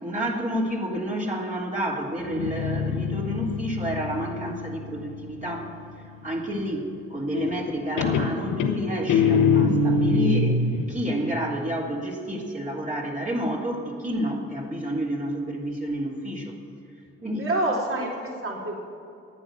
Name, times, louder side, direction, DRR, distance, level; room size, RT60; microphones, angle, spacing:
voice 1, 0.0-5.7 6.2-16.5 17.2-17.5, equal, 25° right, -3 dB, 3.1 m, -29 dB
Guitar, 2.2-5.8 7.3-7.7 8.0-10.9, left 4 dB, 80° left, 1.0 m, -24 dB
voice 2, 17.4-18.7, right 2 dB, 45° right, -2 dB, 3.9 m, -27 dB
11.0 x 9.2 x 9.1 m, 2.7 s
supercardioid pair, 45°, 31 cm